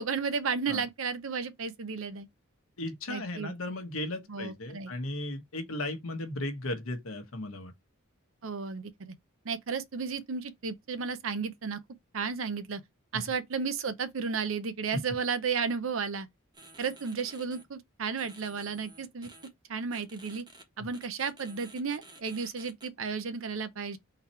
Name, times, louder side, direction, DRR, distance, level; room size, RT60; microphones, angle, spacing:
voice 1, 0.0-2.3 3.1-3.5 4.3-4.9 8.4-9.1 9.4-11.8 12.1-12.8 13.1-16.3 16.8-19.3 19.7-20.4 20.8-24.0, right 5 dB, 65° right, 0.6 m, -33 dB
voice 2, 2.8-7.7 14.9-15.0 20.8-20.9, left 1 dB, 80° left, 1.1 m, -36 dB
sound 1, 16.5-17.6 18.2-19.5 19.9-20.6 20.9-22.9, right 2 dB, 20° right, 1.0 m, -52 dB
4.0 x 2.9 x 4.3 m
head